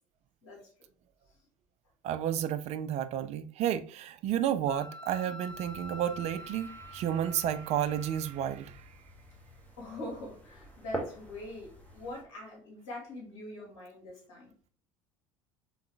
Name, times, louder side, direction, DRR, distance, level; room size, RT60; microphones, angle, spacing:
voice 1, 2.0-8.7, right 10 dB, 45° right, 0.4 m, -31 dB
Wind instrument woodwind instrument, 4.7-8.4, equal, 30° left, 1.0 m, -46 dB
sound 1, 5.5-12.2, right 1 dB, 10° left, 1.3 m, -46 dB
voice 2, 9.8-14.5, left 1 dB, 65° left, 2.3 m, -43 dB
3.9 x 3.5 x 3.4 m
figure-of-eight pair, 65°, 16 cm